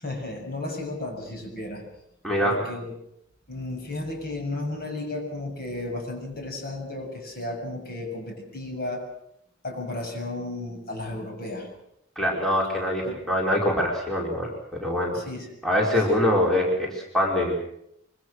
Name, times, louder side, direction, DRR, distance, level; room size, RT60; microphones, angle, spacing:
voice 1, 0.0-1.8 2.4-2.9 3.5-9.0 9.6-11.7 13.0-13.2 15.1-15.5 16.1-16.2, left 2 dB, 50° left, 2 dB, 7.1 m, -33 dB
voice 2, 2.2-2.6 12.2-15.2 15.6-17.6, left 1 dB, ahead, -3 dB, 4.7 m, -24 dB
25.0 x 24.5 x 6.4 m, 0.78 s
head